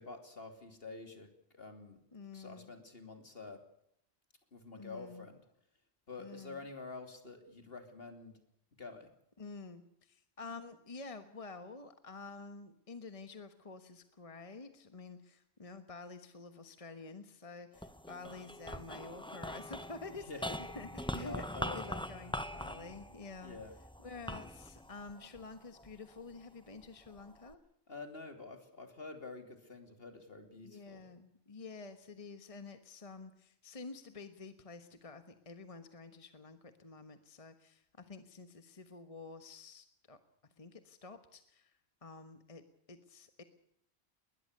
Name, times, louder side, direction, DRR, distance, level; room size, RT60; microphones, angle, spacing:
voice 1, 0.0-2.0 2.3-3.6 4.5-5.4 6.1-8.3 8.8-9.1 20.1-20.6 21.1-22.3 23.4-23.8 27.9-31.0, left 3 dB, 60° left, 6 dB, 3.2 m, -48 dB
voice 2, 2.1-2.7 4.7-5.3 6.2-6.6 9.4-21.5 21.7-23.6 24.0-27.6 30.6-40.2 40.6-42.6 42.9-43.4, left 3 dB, 35° left, 9 dB, 1.3 m, -49 dB
sound 1, 17.7-26.2 26.8-27.5, left 1 dB, 5° left, 0.9 m, -43 dB
21.0 x 20.5 x 6.7 m, 0.74 s
omnidirectional pair, 1.1 m